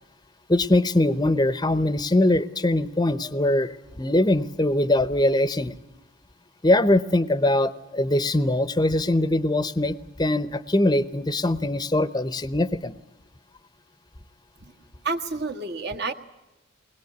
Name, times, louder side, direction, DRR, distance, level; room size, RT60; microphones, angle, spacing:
voice 1, 0.5-5.7 6.6-12.9, left 1 dB, 20° left, 14 dB, 0.8 m, -22 dB
voice 2, 15.0-16.1, right 3 dB, 50° right, 4 dB, 1.7 m, -29 dB
22.0 x 20.5 x 9.4 m, 0.99 s
head